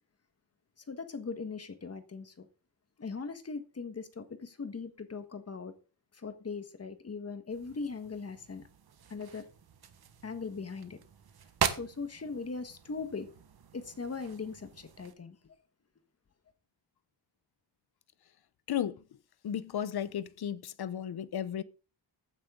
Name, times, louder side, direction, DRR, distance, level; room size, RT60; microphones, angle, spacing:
voice 1, 0.8-2.5 3.0-5.7 6.1-8.7 9.1-9.5 10.2-11.0 11.6-13.3 13.7-15.5, left 4 dB, 35° left, 1.5 m, -40 dB
sound 1, 7.5-15.1, right 8 dB, 55° right, 1.4 m, -40 dB
voice 2, 18.7-19.0 19.4-21.6, left 9 dB, 60° left, 0.9 m, -34 dB
15.0 x 9.2 x 3.8 m
wide cardioid pair, 160°, 44 cm